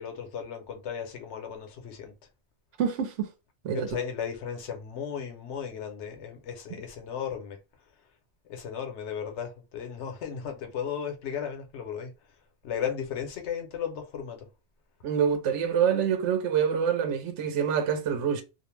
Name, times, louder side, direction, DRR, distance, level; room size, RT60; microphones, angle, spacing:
voice 1, 0.0-2.1 3.7-7.6 8.5-12.1 12.6-14.5, left 7 dB, 80° left, 1.0 m, -35 dB
voice 2, 2.8-3.3 3.6-3.9 15.0-18.4, right 7 dB, 90° right, 0.9 m, -26 dB
2.4 x 2.0 x 3.1 m
omnidirectional pair, 1.2 m